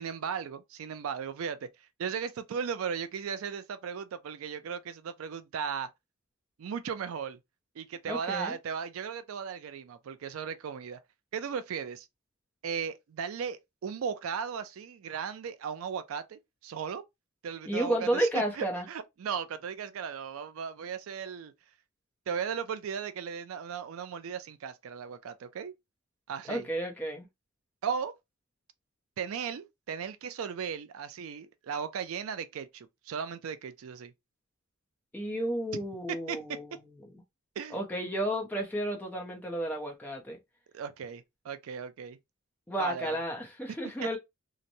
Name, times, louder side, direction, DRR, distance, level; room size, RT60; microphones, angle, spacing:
voice 1, 0.0-5.9 6.6-7.4 7.8-11.0 11.3-12.1 12.6-17.0 17.4-21.5 22.3-25.7 26.3-26.7 27.8-28.1 29.2-34.1 36.3-36.6 37.6-37.8 40.7-42.2 42.8-43.2 44.0-44.2, right 7 dB, 75° right, 0.4 m, -36 dB
voice 2, 8.1-8.5 17.7-18.9 26.5-27.3 35.1-36.7 37.7-40.4 42.7-44.2, right 1 dB, 10° left, 0.7 m, -32 dB
2.9 x 2.1 x 2.6 m
head